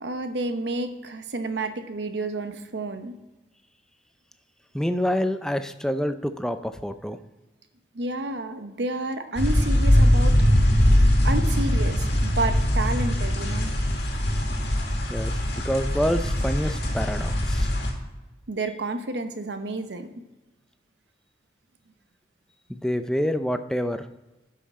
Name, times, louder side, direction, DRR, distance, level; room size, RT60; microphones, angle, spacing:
voice 1, 0.0-3.1 7.9-10.4 10.6-10.9 11.2-13.7 18.5-20.1, right 2 dB, 75° right, 8 dB, 0.9 m, -30 dB
voice 2, 4.7-7.2 15.1-15.4 15.6-17.7 22.7-24.1, equal, 5° left, 10 dB, 0.4 m, -27 dB
sound 1, 9.3-17.9, equal, 70° left, 1.8 m, -21 dB
11.0 x 5.7 x 4.1 m, 1.1 s
head